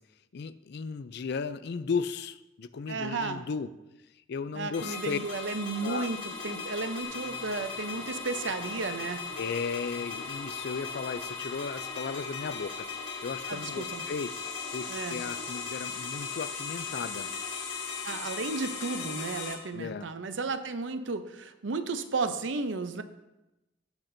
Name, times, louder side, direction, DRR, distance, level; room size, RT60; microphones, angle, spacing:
voice 1, 0.3-3.7 4.3-5.2 5.8-6.1 9.4-12.9 13.2-14.3 14.7-17.3 19.7-20.1, left 5 dB, 65° left, 14 dB, 0.4 m, -35 dB
voice 2, 2.9-3.4 4.5-9.2 13.5-14.0 14.9-15.2 18.0-23.0, right 3 dB, 85° right, 10 dB, 0.7 m, -33 dB
sound 1, 4.7-19.5, left 5 dB, 85° left, 1.6 m, -37 dB
sound 2, 7.0-12.6, right 3 dB, 60° right, 1.0 m, -52 dB
16.5 x 5.9 x 2.7 m, 0.96 s
head